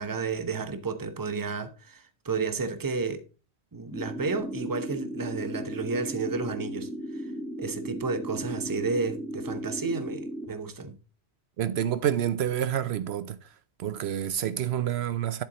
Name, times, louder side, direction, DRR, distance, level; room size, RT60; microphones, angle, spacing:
voice 1, 0.0-3.2 3.7-7.3 7.6-11.0, right 4 dB, 20° right, 0.8 m, -32 dB
sound 1, 3.9-10.5, right 1 dB, ahead, 2.5 m, -36 dB
voice 2, 11.6-13.4 13.8-15.4, right 10 dB, 70° right, 0.8 m, -28 dB
10.5 x 8.1 x 3.0 m
omnidirectional pair, 1.1 m